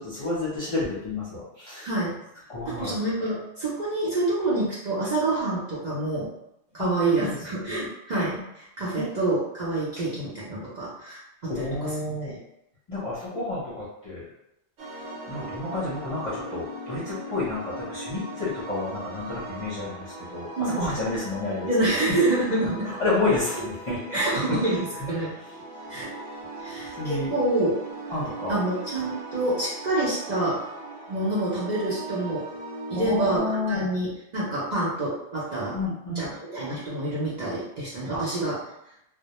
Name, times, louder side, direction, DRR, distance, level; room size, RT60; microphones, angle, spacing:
voice 1, 0.0-1.9 2.5-3.0 6.8-6.9 7.2-7.9 9.0-9.1 11.5-12.4 12.9-14.3 15.3-22.2 22.6-24.8 25.9-26.1 27.0-27.3 28.1-28.6 32.9-33.9 35.7-36.4 38.1-38.4, left 2 dB, 35° left, -8 dB, 0.6 m, -30 dB
voice 2, 1.8-2.2 2.7-6.3 6.7-11.9 20.6-20.9 21.6-22.9 24.1-24.8 25.1-25.3 25.9-26.1 26.6-27.7 28.5-30.6 31.1-32.5 32.9-35.8 36.1-36.3 36.5-38.6, right 2 dB, 45° right, -9 dB, 0.6 m, -27 dB
sound 1, 14.8-33.4, right 2 dB, 85° right, 1.0 m, -39 dB
2.1 x 2.1 x 2.9 m, 0.83 s
omnidirectional pair, 1.2 m